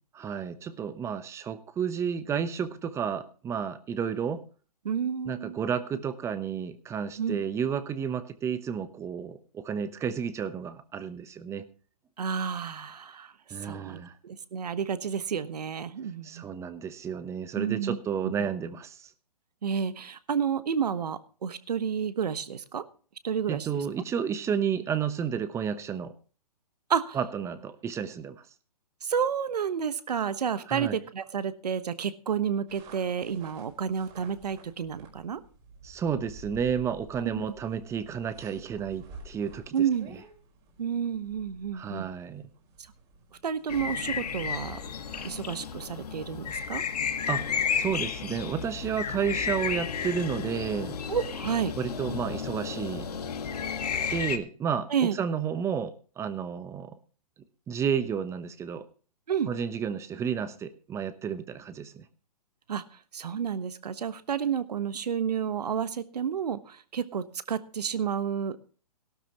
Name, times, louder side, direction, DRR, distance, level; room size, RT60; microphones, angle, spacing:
voice 1, 0.2-4.4 5.3-11.7 13.5-14.1 16.2-19.1 23.5-26.1 27.1-28.4 30.7-31.0 35.8-39.7 41.7-42.5 47.3-47.5 47.7-51.0 51.8-53.1 54.1-57.0 57.7-58.9 59.5-62.0, right 7 dB, 15° right, 13 dB, 0.8 m, -31 dB
voice 2, 4.8-5.6 7.2-7.4 12.2-13.3 13.6-16.5 17.5-18.0 18.2-18.5 19.6-22.8 23.2-23.7 26.9-27.2 29.0-35.4 37.3-37.5 39.7-40.1 40.8-42.1 43.4-44.8 45.2-46.8 51.1-51.7 54.9-55.1 59.3-59.5 62.7-62.8 63.1-68.6, right 7 dB, 75° right, 13 dB, 1.3 m, -30 dB
sound 1, 32.7-45.3, right 2 dB, 30° right, 4.8 m, -51 dB
sound 2, 43.7-54.4, left 7 dB, 70° left, 1.6 m, -32 dB
17.0 x 12.5 x 3.0 m, 0.39 s
hypercardioid pair, 135°, 21 cm